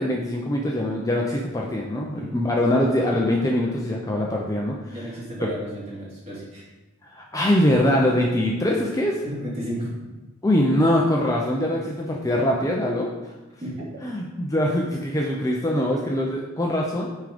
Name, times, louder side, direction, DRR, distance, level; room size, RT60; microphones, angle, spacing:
voice 1, 0.0-5.0 5.4-5.5 7.0-9.2 10.4-13.1 14.0-17.1, left 1 dB, 15° left, -1 dB, 0.5 m, -23 dB
voice 2, 2.1-2.8 4.9-6.7 9.2-9.9 13.6-13.9, equal, 30° right, -5 dB, 2.0 m, -33 dB
9.2 x 3.8 x 5.0 m, 1.1 s
head